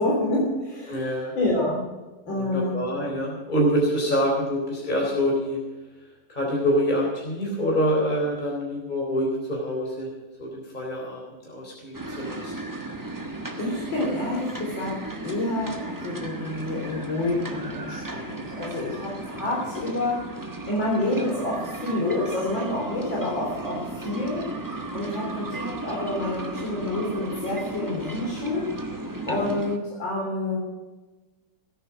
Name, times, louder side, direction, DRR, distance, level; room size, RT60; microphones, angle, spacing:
voice 1, 0.0-1.8 2.3-2.8 13.6-20.3 20.7-28.7 29.3-30.6, left 2 dB, 85° left, -4 dB, 4.5 m, -28 dB
voice 2, 0.9-1.3 2.3-5.6 6.3-10.1 10.4-12.5 19.3-19.4 29.3-29.4, equal, 25° left, -2 dB, 3.9 m, -26 dB
sound 1, 11.9-29.8, right 2 dB, 10° right, 1.2 m, -35 dB
17.5 x 10.0 x 6.1 m, 1.2 s
omnidirectional pair, 2.0 m